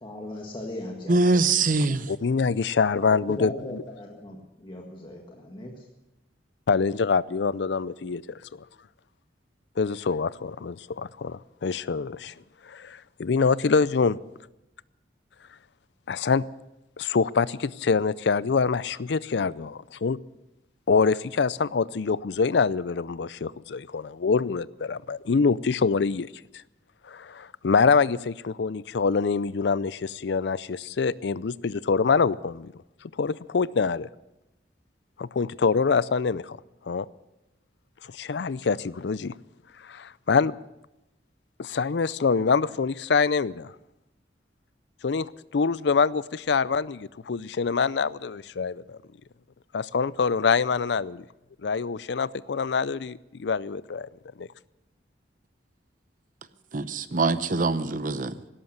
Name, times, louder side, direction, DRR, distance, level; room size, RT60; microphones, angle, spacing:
voice 1, 0.0-1.6 2.8-5.9, left 1 dB, 25° left, -1 dB, 1.8 m, -38 dB
voice 2, 1.1-2.1 56.7-58.4, right 3 dB, 45° right, 13 dB, 0.8 m, -23 dB
voice 3, 2.1-3.5 6.7-8.6 9.8-12.3 12.7-14.2 16.1-16.4 17.0-20.2 20.9-26.3 27.1-32.7 33.2-34.1 35.2-36.6 36.9-37.1 38.1-39.3 39.8-40.5 41.6-43.7 45.0-49.0 49.7-51.2 51.6-54.1 54.4-54.5, left 5 dB, 65° left, 19 dB, 0.5 m, -25 dB
17.0 x 13.0 x 6.6 m, 0.93 s
head